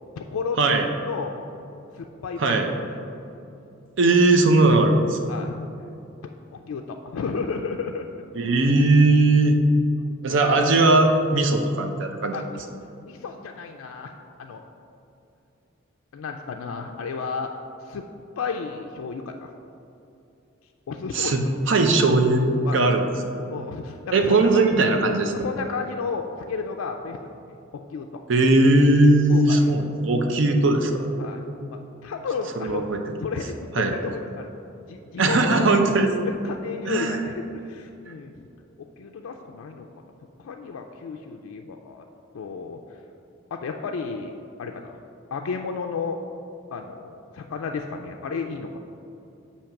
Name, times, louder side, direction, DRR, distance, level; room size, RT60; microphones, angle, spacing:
voice 1, 0.2-1.4 1.9-2.7 5.3-5.6 6.5-8.1 10.3-10.5 12.3-12.6 13.0-14.1 14.4-14.6 16.1-17.5 17.8-18.1 18.4-19.5 20.9-21.4 22.6-22.8 23.5-24.8 25.3-27.2 27.5-28.2 29.3-29.7 31.2-31.4 31.7-34.5 34.9-35.7 36.3-38.3 38.8-39.9 40.4-42.0 42.3-43.0 43.5-45.0 45.3-46.2 46.7-48.8, left 5 dB, 90° left, 3 dB, 0.3 m, -32 dB
voice 2, 2.4-2.7 4.0-5.2 8.4-9.6 10.2-12.3 21.1-23.0 24.1-25.3 28.3-31.1 32.6-33.0 33.8-33.9 35.2-36.1 36.9-37.2, right 2 dB, 65° right, 4 dB, 0.5 m, -19 dB
7.1 x 2.8 x 5.7 m, 2.7 s
head